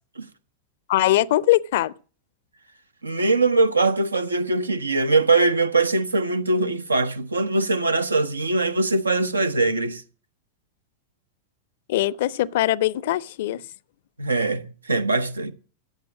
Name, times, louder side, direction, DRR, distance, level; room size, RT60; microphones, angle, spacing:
voice 1, 0.9-1.9 11.9-13.6, left 15 dB, 55° left, 0.6 m, -21 dB
voice 2, 3.0-10.0 14.2-15.5, right 3 dB, 80° right, 0.9 m, -22 dB
14.5 x 9.2 x 6.2 m
figure-of-eight pair, 90°, 0 cm